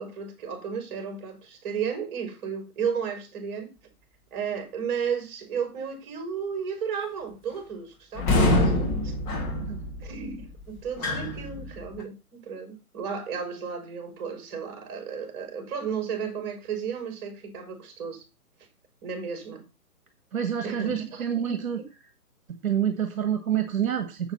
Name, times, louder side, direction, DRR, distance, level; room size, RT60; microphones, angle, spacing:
voice 1, 0.0-3.7 4.3-9.1 10.0-18.2 19.0-19.6 20.6-21.8, right 6 dB, 30° right, 4.6 m, -33 dB
sound 1, 8.1-12.0, left 1 dB, 30° left, 3.2 m, -26 dB
voice 2, 20.3-21.8 22.5-24.3, right 9 dB, 65° right, 1.5 m, -28 dB
7.9 x 7.1 x 5.7 m
hypercardioid pair, 145°, 46 cm